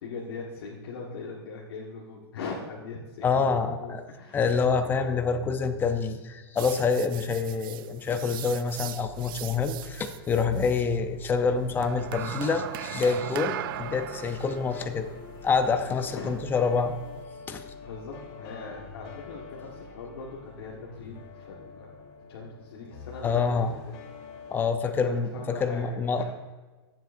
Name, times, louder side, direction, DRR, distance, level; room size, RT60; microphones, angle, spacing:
voice 1, 0.0-4.5 4.8-5.1 16.1-16.4 17.8-22.0 22.3-23.7 24.3-24.5 24.8-26.2, left 4 dB, 70° left, -3 dB, 1.6 m, -40 dB
voice 2, 3.2-4.0 4.3-15.1 15.4-17.0 17.5-17.6 23.2-23.8 24.5-26.2, left 5 dB, 15° left, 8 dB, 0.6 m, -27 dB
sound 1, 6.6-10.8 11.8-17.2, right 14 dB, 60° right, 0.4 m, -39 dB
sound 2, 8.9-24.7, left 5 dB, 45° left, 1.3 m, -46 dB
15.5 x 7.5 x 2.6 m, 1.3 s
hypercardioid pair, 140°, 13 cm